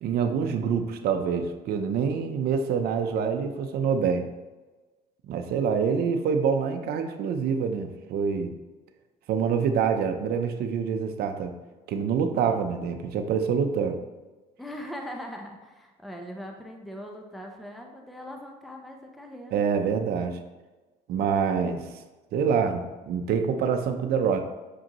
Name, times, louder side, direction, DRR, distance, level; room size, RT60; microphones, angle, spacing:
voice 1, 0.0-4.3 5.3-8.5 9.3-11.5 11.9-14.0 19.5-20.4 21.1-21.8 22.3-24.4, right 6 dB, 70° right, 6 dB, 0.6 m, -26 dB
voice 2, 14.6-19.6, equal, ahead, 2 dB, 0.7 m, -40 dB
6.3 x 5.0 x 3.0 m, 1.2 s
cardioid pair, 110°, 17 cm